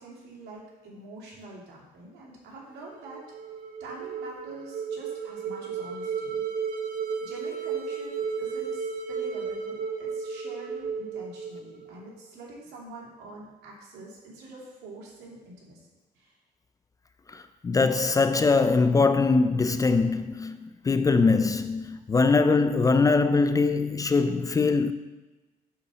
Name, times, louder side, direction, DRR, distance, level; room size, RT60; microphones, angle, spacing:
voice 1, 0.0-3.3 3.8-6.4 7.2-15.8 16.1-16.3, right 2 dB, 80° right, 2.8 m, -45 dB
sound 1, 2.9-12.1, right 6 dB, 60° right, 0.9 m, -34 dB
voice 2, 17.3-24.9, left 4 dB, 20° left, 0.4 m, -22 dB
8.6 x 4.2 x 6.9 m
cardioid pair, 110°, 17 cm